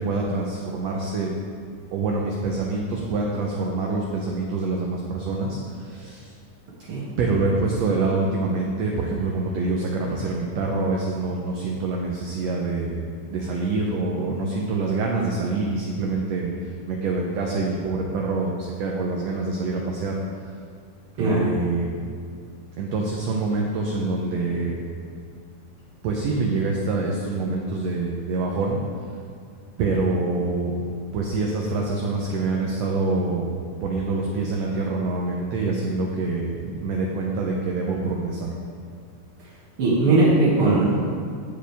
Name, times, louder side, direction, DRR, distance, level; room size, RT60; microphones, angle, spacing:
voice 1, 0.0-1.3 1.9-6.3 7.2-20.2 21.2-21.9 22.8-24.8 26.0-29.1 29.8-30.8 31.1-38.5, right 3 dB, 70° right, -1 dB, 1.6 m, -26 dB
voice 2, 39.8-41.0, right 2 dB, 50° right, -9 dB, 2.0 m, -19 dB
14.5 x 5.0 x 3.4 m, 2.2 s
omnidirectional pair, 3.7 m